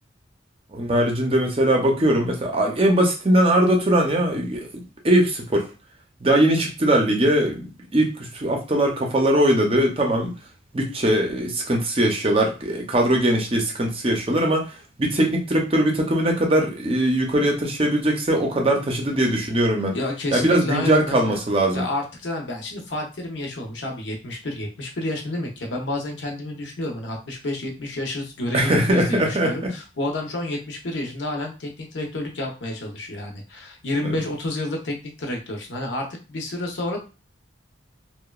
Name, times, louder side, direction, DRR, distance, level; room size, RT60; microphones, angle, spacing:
voice 1, 0.7-5.7 6.2-10.3 10.7-14.7 15.0-20.0 20.3-21.9 28.5-29.7 34.0-34.2, right 1 dB, 30° right, 2 dB, 0.5 m, -21 dB
voice 2, 19.9-21.4 21.7-37.0, left 1 dB, 75° left, 2 dB, 0.7 m, -30 dB
2.9 x 2.1 x 2.3 m, 0.32 s
head